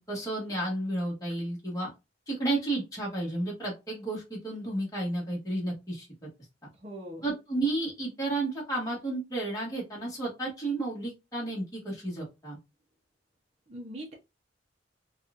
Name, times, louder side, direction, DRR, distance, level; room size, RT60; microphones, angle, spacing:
voice 1, 0.1-1.9 2.3-6.3 7.2-12.6, right 2 dB, 20° left, -5 dB, 1.3 m, -32 dB
voice 2, 6.7-7.2 13.7-14.1, equal, 35° right, -1 dB, 0.7 m, -41 dB
4.1 x 2.4 x 2.4 m, 0.24 s
head